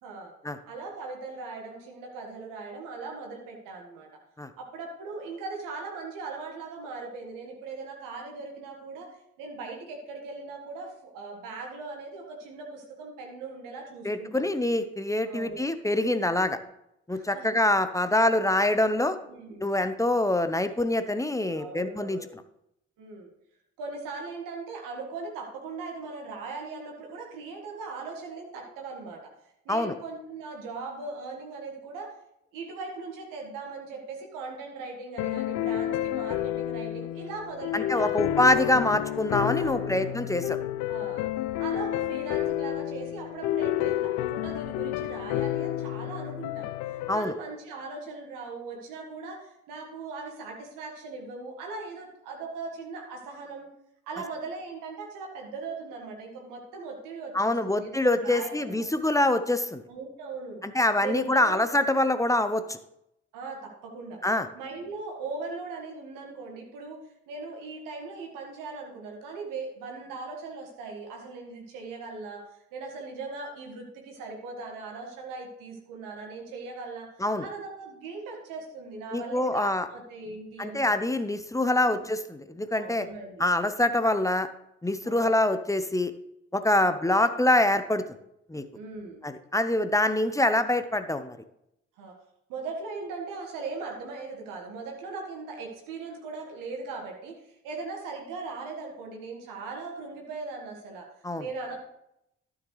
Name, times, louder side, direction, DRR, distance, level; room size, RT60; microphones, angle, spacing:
voice 1, 0.0-0.3 0.6-4.1 4.6-14.5 15.3-15.6 17.1-17.5 19.2-19.7 21.6-22.2 23.0-23.3 23.8-29.3 29.7-32.2 32.5-38.4 39.6-40.3 40.9-41.2 41.6-53.7 54.1-58.9 59.9-60.6 61.0-61.6 63.3-64.2 64.5-80.9 81.9-82.0 82.7-83.4 85.0-85.5 86.7-87.1 88.7-89.2 92.0-92.2 92.5-101.1 101.4-101.8, right 4 dB, 70° right, 1 dB, 1.8 m, -39 dB
voice 2, 14.0-16.6 17.1-19.2 19.6-22.2 29.7-29.9 37.7-40.6 47.1-47.3 57.3-59.8 60.6-62.8 64.2-64.5 77.2-77.4 79.1-79.9 80.6-83.1 83.4-84.5 84.8-86.1 86.5-88.0 88.5-88.6 89.2-91.4 101.2-101.4, left 1 dB, 10° left, 10 dB, 0.8 m, -25 dB
sound 1, 35.2-47.2, left 14 dB, 60° left, 0.5 m, -30 dB
12.5 x 7.3 x 3.3 m, 0.80 s
figure-of-eight pair, 45°, 34 cm